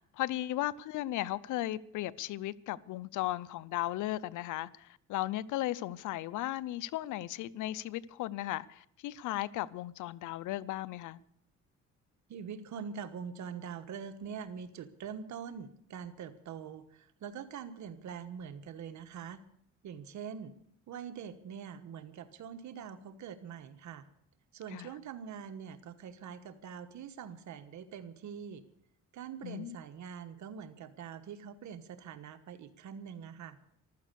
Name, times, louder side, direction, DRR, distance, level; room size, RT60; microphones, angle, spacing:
voice 1, 0.1-11.2 24.7-24.9 29.4-29.8, left 15 dB, 85° left, 0.6 m, -36 dB
voice 2, 12.3-19.4 19.8-20.5 20.9-24.0 24.5-28.6 29.1-33.6, right 7 dB, 70° right, 1.2 m, -44 dB
15.0 x 13.0 x 6.8 m
cardioid pair, 90°, 30 cm